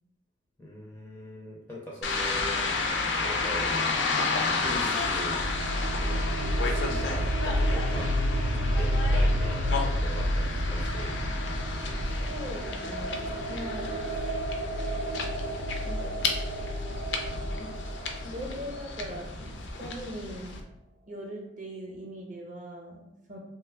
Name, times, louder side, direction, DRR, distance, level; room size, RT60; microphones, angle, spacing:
voice 1, 0.6-2.7 3.2-4.0 4.6-5.4 6.6-8.1 8.5-11.1, equal, 10° left, -4 dB, 0.4 m, -40 dB
sound 1, 2.0-20.6, left 3 dB, 80° left, 0.4 m, -32 dB
sound 2, 4.5-19.1, equal, 75° right, 0.4 m, -30 dB
voice 2, 12.1-13.9 15.6-16.1 17.6-17.7 18.2-19.5 19.8-20.6 21.1-23.4, equal, 45° right, 0 dB, 0.7 m, -40 dB
2.9 x 2.2 x 3.3 m, 0.86 s
head